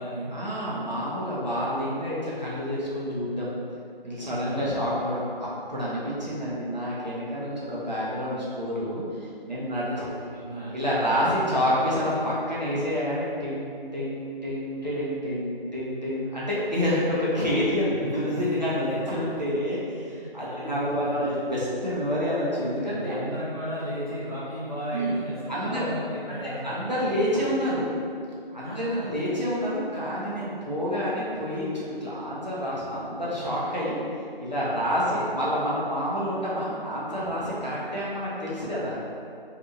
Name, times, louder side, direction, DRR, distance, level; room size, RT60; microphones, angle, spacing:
voice 1, 0.3-3.6 4.0-9.0 9.5-10.1 10.7-23.2 24.9-25.2 25.5-25.9 26.3-27.9 28.5-34.0 34.4-39.0, equal, 45° right, -9 dB, 0.6 m, -28 dB
voice 2, 10.3-10.7 17.7-19.0 19.3-19.4 20.1-21.4 22.9-26.7 28.6-29.1 34.7-35.3, equal, 40° left, -12 dB, 1.0 m, -35 dB
2.7 x 2.4 x 2.7 m, 2.4 s
figure-of-eight pair, 180°, 30 cm